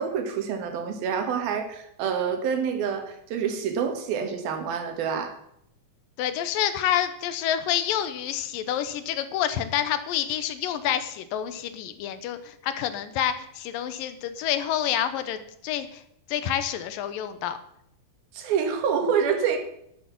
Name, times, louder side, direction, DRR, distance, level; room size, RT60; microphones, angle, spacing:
voice 1, 0.0-5.4 18.3-19.6, right 7 dB, 90° right, 6 dB, 3.4 m, -27 dB
voice 2, 6.2-15.4 15.6-16.0 16.3-17.6, left 10 dB, 75° left, 11 dB, 2.5 m, -28 dB
11.5 x 8.9 x 5.9 m, 0.73 s
omnidirectional pair, 4.1 m